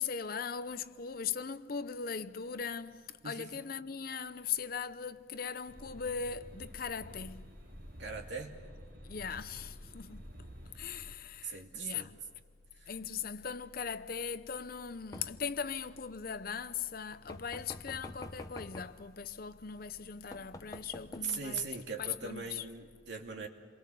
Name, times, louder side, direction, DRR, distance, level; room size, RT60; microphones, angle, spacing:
voice 1, 0.0-7.6 9.0-10.2 10.7-12.2 12.9-22.6, left 6 dB, 50° left, 0.7 m, -39 dB
sound 1, 5.7-11.1, equal, 90° right, 2.8 m, -50 dB
voice 2, 8.0-8.6 11.4-12.1 12.7-12.9 21.2-23.5, right 5 dB, 70° right, 2.6 m, -40 dB
sound 2, 15.1-15.6 17.3-19.0 19.9-20.0 20.3-21.3, left 1 dB, 20° left, 0.9 m, -47 dB
28.5 x 22.5 x 6.9 m
head